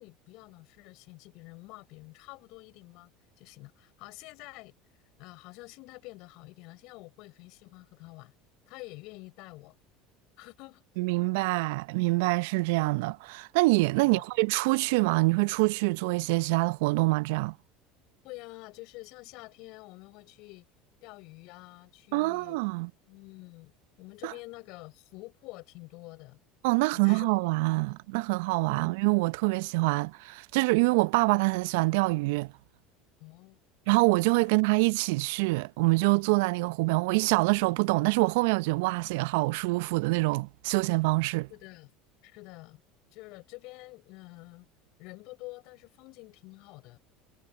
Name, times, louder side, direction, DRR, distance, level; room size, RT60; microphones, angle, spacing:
voice 1, 0.0-3.1 3.4-4.7 5.2-8.3 8.7-9.8 10.4-10.8 14.0-14.2 18.2-20.7 21.0-22.6 23.1-26.4 26.8-27.8 28.7-29.0 33.2-33.6 41.5-41.9 42.2-42.8 43.1-44.7 45.0-47.0, left 24 dB, 60° left, 7.6 m, -48 dB
voice 2, 11.0-17.5 22.1-22.9 24.2-24.3 26.6-32.5 33.9-41.5, right 26 dB, 65° right, 1.2 m, -25 dB
hypercardioid pair, 70°, 0 cm